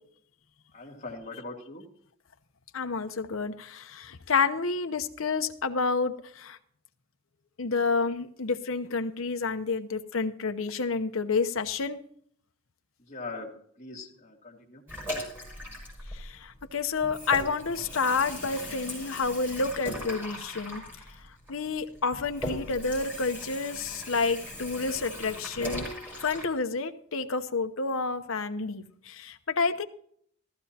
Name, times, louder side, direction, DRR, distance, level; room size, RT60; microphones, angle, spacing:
voice 1, 0.7-1.9 13.1-14.8, left 3 dB, 30° left, -2 dB, 2.1 m, -41 dB
voice 2, 2.7-6.6 7.6-12.0 16.1-20.8 21.5-25.9 26.2-29.8, left 4 dB, 75° left, 8 dB, 0.9 m, -29 dB
Water tap faucet / Sink (filling or washing), 14.9-16.7 17.0-26.5, equal, 10° right, 5.2 m, -39 dB
14.5 x 14.5 x 2.9 m, 0.62 s
head